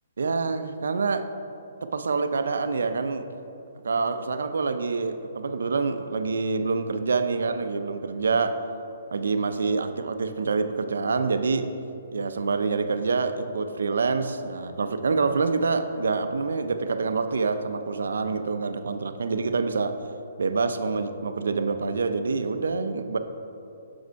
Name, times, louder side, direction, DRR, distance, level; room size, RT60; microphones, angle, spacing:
voice 1, 0.2-1.2 1.8-3.3 3.8-8.6 9.1-11.7 12.1-20.0 20.4-23.2, right 4 dB, 80° right, 9 dB, 0.5 m, -26 dB
6.5 x 4.9 x 4.5 m, 2.7 s
hypercardioid pair, 150°, 0 cm